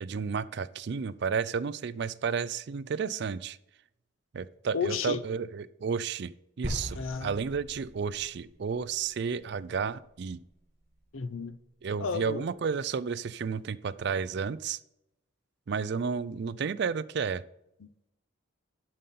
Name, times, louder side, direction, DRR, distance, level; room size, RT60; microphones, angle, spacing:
voice 1, 0.0-3.6 4.3-10.4 11.8-14.8 15.7-17.4, right 6 dB, 55° right, 0.4 m, -32 dB
voice 2, 4.7-5.2 6.9-7.3 11.1-11.6 12.0-12.4 17.8-18.1, left 5 dB, 80° left, 0.6 m, -33 dB
sound 1, 6.6-11.0, equal, 30° right, 2.0 m, -42 dB
11.0 x 5.4 x 4.2 m
head